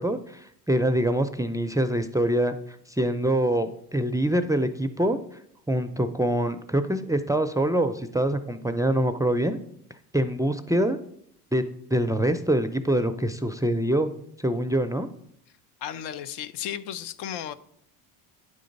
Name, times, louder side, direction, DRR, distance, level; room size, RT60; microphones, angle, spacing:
voice 1, 0.0-2.5 2.9-5.2 5.7-9.6 10.1-11.0 11.5-11.6 11.9-14.1 14.4-15.1, right 1 dB, 10° right, 0.3 m, -24 dB
voice 2, 15.8-17.5, left 10 dB, 70° left, 0.7 m, -34 dB
9.5 x 3.8 x 5.2 m
supercardioid pair, 90°, 42 cm